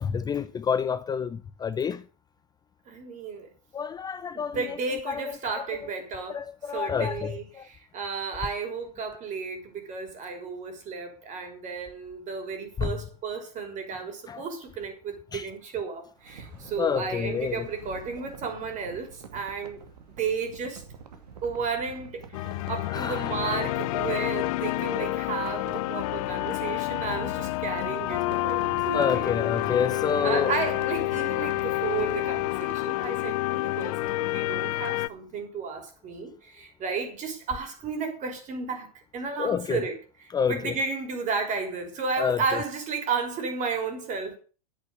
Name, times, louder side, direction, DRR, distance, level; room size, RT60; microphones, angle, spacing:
voice 1, 0.0-2.0 3.7-4.6 5.1-5.2 5.6-5.7 6.3-7.6 12.8-12.9 14.3-14.4 15.3-15.4 16.8-17.6 22.9-23.3 28.9-30.5 39.4-39.8 40.3-40.7 42.2-42.4, left 7 dB, 20° left, 0.7 m, -28 dB
voice 2, 2.9-3.5 4.3-6.4 6.7-19.8 20.2-20.9 21.4-29.4 29.7-29.8 30.2-44.4, right 5 dB, 40° right, 6.1 m, -33 dB
sound 1, 16.2-32.9, right 6 dB, 80° right, 2.4 m, -47 dB
sound 2, 22.3-35.1, left 18 dB, 60° left, 0.7 m, -28 dB
11.0 x 8.3 x 8.3 m
hypercardioid pair, 100°, 20 cm